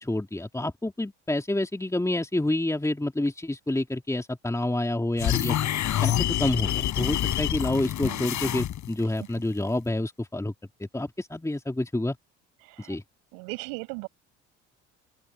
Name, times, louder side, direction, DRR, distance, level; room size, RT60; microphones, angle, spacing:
voice 1, 0.0-5.6 6.0-10.5 10.9-12.2 12.8-13.0, left 1 dB, 10° left, 3.1 m, -28 dB
sound 1, 5.2-9.0, left 11 dB, 55° left, 5.2 m, -27 dB
voice 2, 12.6-13.0 13.3-14.1, right 34 dB, 80° right, 6.0 m, -37 dB
open air
hypercardioid pair, 60°, 34 cm